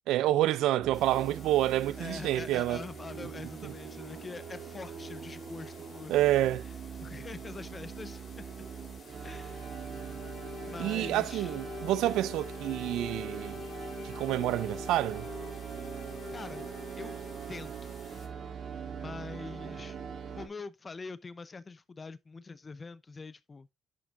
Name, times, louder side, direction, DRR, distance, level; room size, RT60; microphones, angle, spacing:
voice 1, 0.1-2.8 3.6-3.7 6.1-6.7 10.8-13.6 14.0-15.3, right 14 dB, 90° right, 0.4 m, -28 dB
sound 1, 0.8-20.5, right 7 dB, 60° right, 1.8 m, -42 dB
sound 2, 0.9-18.3, left 5 dB, 50° left, 2.6 m, -56 dB
voice 2, 2.0-6.2 7.0-8.7 9.2-9.6 10.6-11.5 16.3-16.7 17.0-17.2 17.5-18.0 19.0-20.0 20.3-23.7, left 4 dB, 30° left, 0.7 m, -44 dB
sound 3, 9.2-17.6, left 5 dB, 85° left, 2.8 m, -45 dB
10.5 x 5.9 x 2.5 m
cardioid pair, 90°, 0 cm